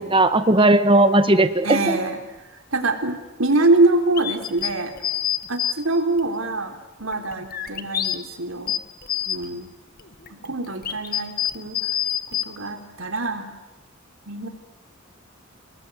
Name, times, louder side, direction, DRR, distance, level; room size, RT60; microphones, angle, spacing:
voice 1, 0.0-2.0, right 2 dB, 25° right, 10 dB, 1.7 m, -17 dB
voice 2, 1.6-2.2 2.7-4.9 5.5-8.8 9.3-9.7 10.3-11.8 12.3-13.5 14.3-14.5, right 2 dB, 85° right, 6 dB, 3.8 m, -24 dB
sound 1, 4.2-5.7 6.2-6.3 7.0-8.2 8.6-9.4 10.0-12.4, left 10 dB, 50° left, 1.8 m, -26 dB
30.0 x 21.0 x 9.5 m, 1.0 s
head